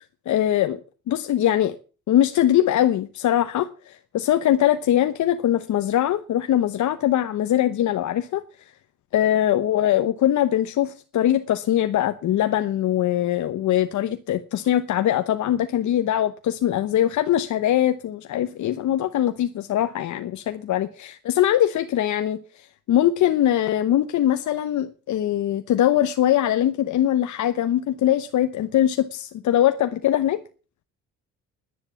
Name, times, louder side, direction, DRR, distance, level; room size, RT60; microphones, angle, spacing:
voice 1, 0.3-0.8 1.1-1.8 2.1-8.4 9.1-30.4, left 12 dB, 70° left, 1.0 m, -22 dB
11.0 x 10.0 x 7.0 m
cardioid pair, 90°, 30 cm